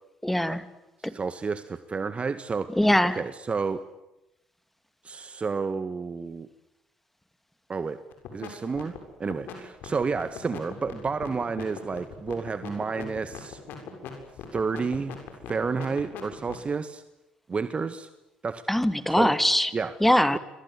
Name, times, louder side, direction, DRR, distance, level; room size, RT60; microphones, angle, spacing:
voice 1, 0.2-0.6 2.8-3.2 18.7-19.7 20.0-20.4, left 1 dB, 5° left, 11 dB, 2.6 m, -21 dB
voice 2, 1.0-2.7 3.1-3.8 5.0-6.5 7.7-8.0 8.3-8.9 9.2-13.6 14.5-15.2 15.5-17.0 17.5-18.1 18.4-18.6 19.1-19.4 19.7-19.9 20.3-20.4, right 5 dB, 35° right, 11 dB, 1.8 m, -30 dB
sound 1, 8.1-8.5 8.8-16.7, left 8 dB, 65° left, 7.2 m, -39 dB
28.0 x 24.5 x 8.5 m, 0.94 s
hypercardioid pair, 50°, 3 cm